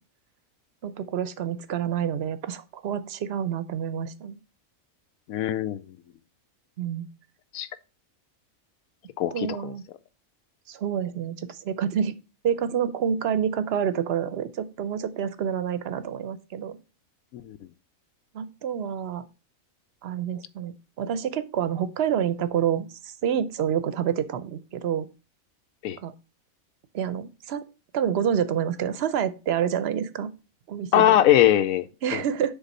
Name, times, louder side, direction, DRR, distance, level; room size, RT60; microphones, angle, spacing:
voice 1, 0.8-4.4 6.8-7.1 9.3-9.8 10.7-12.1 12.4-16.8 18.3-19.3 20.0-25.1 26.0-26.1 26.9-27.6 27.9-30.3 30.7-31.1 32.0-32.5, right 8 dB, 60° right, 0.8 m, -28 dB
voice 2, 5.3-5.8 7.5-7.7 9.2-9.7 17.3-17.6 25.8-26.0 30.9-31.9 32.1-32.2, left 12 dB, 85° left, 1.0 m, -21 dB
7.1 x 3.7 x 5.3 m
omnidirectional pair, 1.4 m